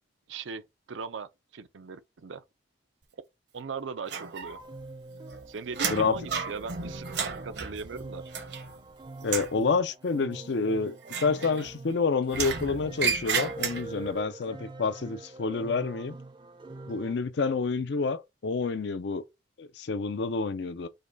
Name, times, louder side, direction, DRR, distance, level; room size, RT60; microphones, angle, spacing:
voice 1, 0.3-0.6 0.9-2.4 3.5-4.6 5.5-8.2, right 5 dB, 85° right, 0.5 m, -39 dB
sound 1, 4.1-4.8 5.1-8.9 9.2-9.6 11.0-11.9 12.3-14.1, right 6 dB, 65° right, 0.8 m, -33 dB
sound 2, 4.6-17.2, right 3 dB, 25° right, 0.5 m, -44 dB
voice 2, 9.2-11.0 11.2-16.2 16.9-19.2 19.6-20.9, left 4 dB, 70° left, 0.5 m, -28 dB
5.1 x 2.2 x 3.9 m
head